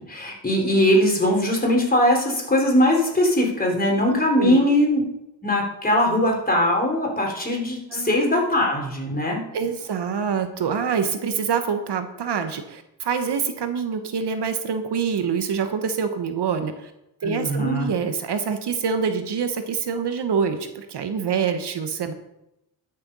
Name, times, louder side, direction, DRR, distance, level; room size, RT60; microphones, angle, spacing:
voice 1, 0.0-5.0 5.4-9.4 17.2-17.9, left 1 dB, 20° left, 0 dB, 3.8 m, -21 dB
voice 2, 4.1-4.8 7.9-8.1 9.5-16.9 17.2-22.1, right 6 dB, 65° right, 8 dB, 1.2 m, -26 dB
12.5 x 6.6 x 5.5 m, 0.88 s
cardioid pair, 85°, 44 cm